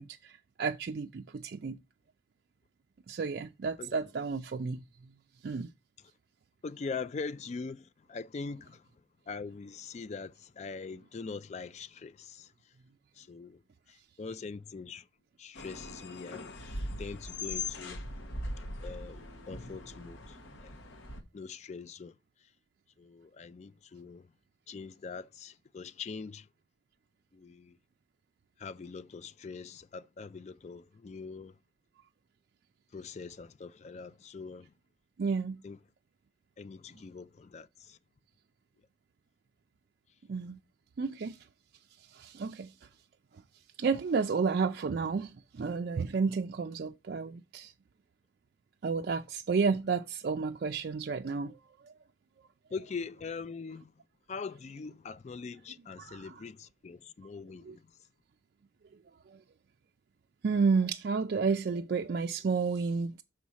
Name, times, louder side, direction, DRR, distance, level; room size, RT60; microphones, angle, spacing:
voice 1, 0.0-1.8 3.1-4.8 5.4-5.7 35.2-35.6 40.3-40.6 41.0-41.4 42.1-42.7 43.8-47.7 48.8-51.6 51.8-51.9 56.0-56.3 57.7-57.8 59.3-59.4 60.4-63.2, right 5 dB, 55° right, 0.4 m, -31 dB
voice 2, 6.6-8.9 9.3-12.7 13.2-13.6 13.9-15.1 15.4-16.5 17.0-18.0 18.8-20.7 21.3-22.2 23.0-24.3 24.7-26.5 27.3-27.8 28.6-31.6 32.9-34.7 35.6-35.8 36.6-38.0 52.7-53.9 54.3-57.9, left 4 dB, 35° left, 0.3 m, -42 dB
sound 1, 15.5-21.2, left 2 dB, 80° left, 1.2 m, -40 dB
6.3 x 4.1 x 6.2 m
head